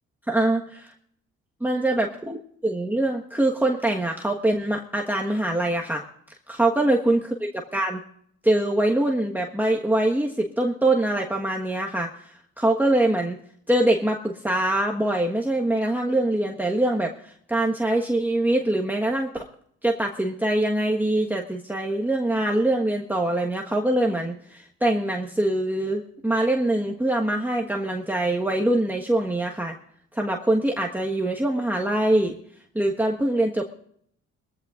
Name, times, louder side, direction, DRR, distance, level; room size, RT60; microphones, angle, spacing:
voice 1, 0.3-0.9 1.6-6.0 6.5-8.0 8.4-13.4 13.7-19.5 19.8-29.7 30.1-32.4 32.7-33.7, right 1 dB, 5° right, 0 dB, 1.3 m, -24 dB
21.5 x 15.0 x 2.5 m, 0.66 s
cardioid pair, 90°, 30 cm